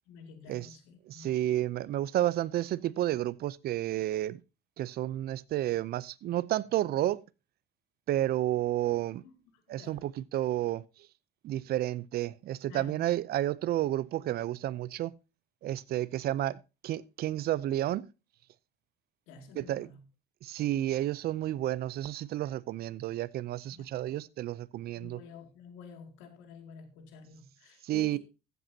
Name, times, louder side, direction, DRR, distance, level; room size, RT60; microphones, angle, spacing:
voice 1, 0.1-1.3 9.0-9.3 9.8-10.1 12.7-13.1 19.3-20.0 23.7-23.9 24.9-28.2, left 5 dB, 80° left, 2.5 m, -50 dB
voice 2, 1.1-4.4 4.8-7.2 8.1-9.2 9.7-11.1 11.4-15.1 15.6-18.1 19.5-19.9 20.4-25.2 27.8-28.2, right 13 dB, 55° right, 0.6 m, -31 dB
15.0 x 8.1 x 2.8 m
supercardioid pair, 105°, 19 cm